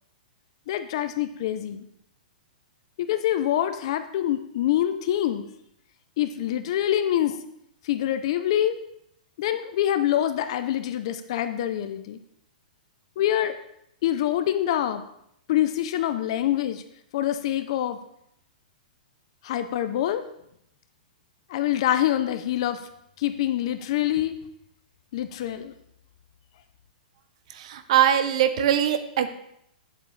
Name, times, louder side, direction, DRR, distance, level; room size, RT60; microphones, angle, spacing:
voice 1, 0.7-1.8 3.0-5.5 6.2-7.4 7.8-8.8 9.4-12.2 13.2-13.6 14.0-15.0 15.5-16.8 17.1-18.0 19.4-20.2 21.5-22.8 23.2-24.4 25.1-25.7, left 12 dB, 40° left, 10 dB, 0.5 m, -25 dB
voice 2, 27.5-29.3, right 10 dB, 45° right, 10 dB, 0.7 m, -22 dB
9.1 x 7.4 x 3.2 m, 0.75 s
hypercardioid pair, 170°, 5 cm